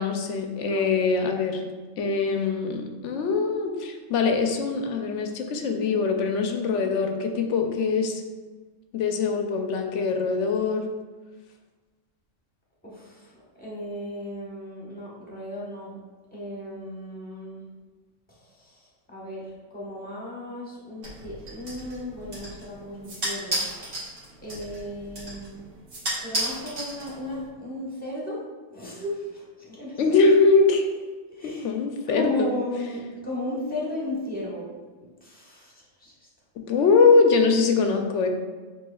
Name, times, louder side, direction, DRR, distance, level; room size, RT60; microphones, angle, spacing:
voice 1, 0.0-1.6 2.0-8.2 8.9-10.9 30.0-30.9 31.4-32.5 36.6-38.3, left 4 dB, 75° left, 4 dB, 0.9 m, -22 dB
voice 2, 0.5-0.9 12.8-16.0 16.3-17.7 18.3-23.6 24.4-25.6 26.2-28.4 28.7-30.0 31.3-31.7 32.1-34.7 35.0-36.3, left 1 dB, 10° left, -5 dB, 1.2 m, -35 dB
sound 1, 21.0-27.5, right 1 dB, 50° right, 1.4 m, -34 dB
7.0 x 3.0 x 2.3 m, 1.3 s
omnidirectional pair, 1.3 m